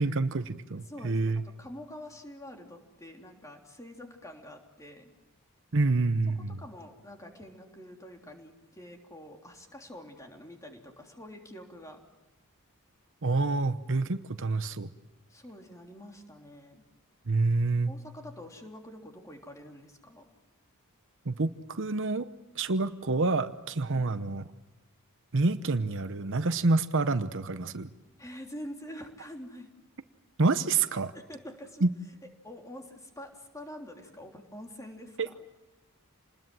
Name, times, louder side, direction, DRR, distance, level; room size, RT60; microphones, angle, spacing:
voice 1, 0.0-1.4 5.7-6.6 13.2-14.9 17.3-17.9 21.2-22.3 22.5-24.4 25.3-27.9 30.4-31.1 31.8-31.9 35.2-35.3, right 3 dB, 60° right, 11 dB, 0.9 m, -27 dB
voice 2, 0.8-1.3 1.6-5.1 6.6-12.0 15.3-16.8 17.5-20.3 23.9-24.1 28.2-29.7 31.1-31.9 32.4-35.4, left 1 dB, 15° left, 2 dB, 3.3 m, -46 dB
28.5 x 20.5 x 7.6 m, 1.1 s
head